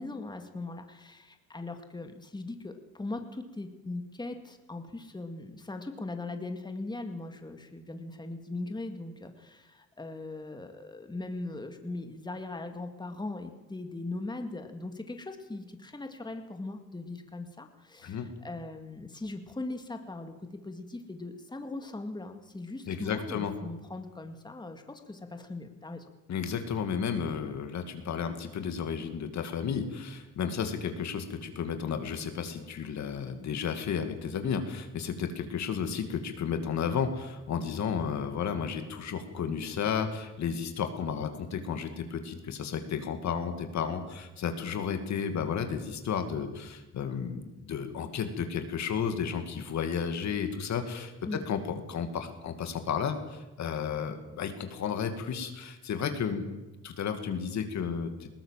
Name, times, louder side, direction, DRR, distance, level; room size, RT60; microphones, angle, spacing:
voice 1, 0.0-26.1 51.3-51.5, left 2 dB, 15° left, 6 dB, 2.2 m, -40 dB
voice 2, 22.9-23.5 26.3-56.4 56.8-58.3, left 7 dB, 65° left, 7 dB, 2.5 m, -33 dB
20.5 x 17.5 x 7.5 m, 1.1 s
cardioid pair, 90°, 30 cm